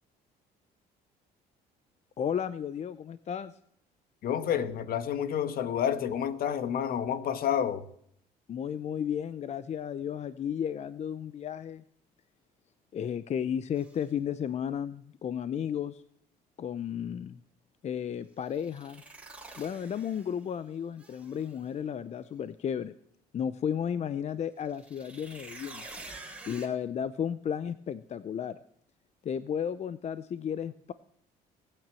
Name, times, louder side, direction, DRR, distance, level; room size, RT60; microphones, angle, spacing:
voice 1, 2.2-3.6 8.5-11.8 12.9-16.0 16.6-17.4 17.8-19.0 19.6-22.9 23.3-25.8 26.5-28.6 29.2-30.9, left 8 dB, 40° left, 0.6 m, -33 dB
voice 2, 4.2-7.8, left 9 dB, 60° left, 1.4 m, -29 dB
sound 1, 13.7-14.0 18.4-20.5 21.0-21.6 24.6-26.7, right 2 dB, 5° right, 3.3 m, -48 dB
18.5 x 9.1 x 7.6 m
cardioid pair, 110°, 17 cm